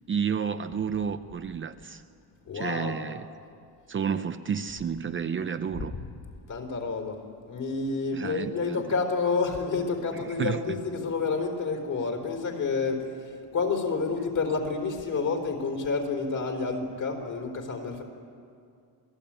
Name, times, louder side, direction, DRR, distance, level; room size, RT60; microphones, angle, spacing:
voice 1, 0.1-2.0 2.5-3.3 3.9-5.9 8.1-8.8 10.1-10.8, right 7 dB, 30° right, 8 dB, 0.7 m, -31 dB
voice 2, 2.5-3.0 6.5-7.2 7.5-13.0 13.5-18.0, left 4 dB, 50° left, 3 dB, 4.1 m, -29 dB
27.0 x 18.0 x 8.9 m, 2.4 s
cardioid pair, 140°, 40 cm